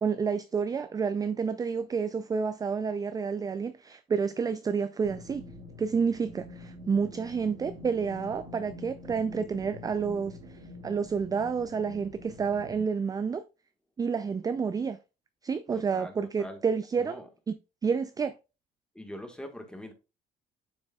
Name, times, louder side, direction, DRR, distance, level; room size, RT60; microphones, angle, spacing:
voice 1, 0.0-5.4 5.8-10.4 10.8-13.4 14.0-15.0 15.4-17.2 17.5-17.6 17.8-18.3, right 5 dB, 20° right, 0.3 m, -29 dB
sound 1, 5.0-12.8, left 1 dB, 50° right, 2.0 m, -46 dB
voice 2, 15.7-16.6 17.0-17.3 18.9-19.9, equal, 5° left, 1.4 m, -43 dB
7.2 x 6.3 x 2.3 m
cardioid pair, 110°, 17 cm